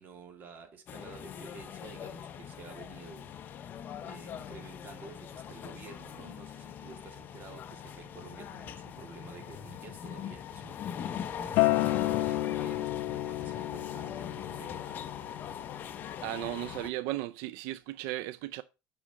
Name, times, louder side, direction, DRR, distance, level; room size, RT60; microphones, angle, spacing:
voice 1, 0.0-3.3 4.0-10.9 11.3-15.0 16.6-16.7, right 5 dB, 40° right, 2.4 m, -51 dB
sound 1, 0.9-16.9, left 8 dB, 35° left, 0.7 m, -41 dB
Acoustic guitar, 11.6-16.8, left 17 dB, 70° left, 0.6 m, -31 dB
voice 2, 16.2-18.6, right 15 dB, 85° right, 0.5 m, -35 dB
8.8 x 6.3 x 5.3 m
cardioid pair, 155°, 5 cm